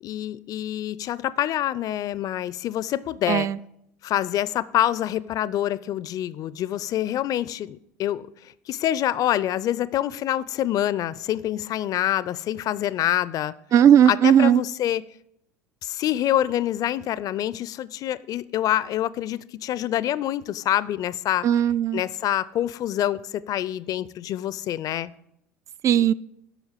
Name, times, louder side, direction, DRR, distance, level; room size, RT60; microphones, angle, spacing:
voice 1, 0.0-3.5 4.0-8.3 8.7-13.5 14.1-15.0 15.8-21.5 21.9-25.1, left 12 dB, 45° left, 19 dB, 0.4 m, -26 dB
voice 2, 3.3-3.6 13.7-14.6 21.4-22.0 25.8-26.1, right 9 dB, 35° right, 18 dB, 0.4 m, -17 dB
8.2 x 6.3 x 7.3 m, 0.78 s
hypercardioid pair, 75°, 9 cm